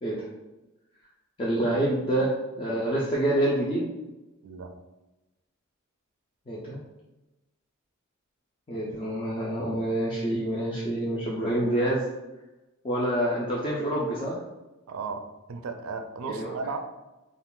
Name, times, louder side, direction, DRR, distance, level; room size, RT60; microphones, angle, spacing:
voice 1, 1.4-3.9 6.5-6.8 8.7-12.0 12.8-14.4 16.3-16.6, right 1 dB, 25° left, -6 dB, 0.4 m, -27 dB
voice 2, 4.4-4.7 14.9-16.8, right 4 dB, 85° right, 7 dB, 0.4 m, -35 dB
2.4 x 2.4 x 3.6 m, 1.0 s
head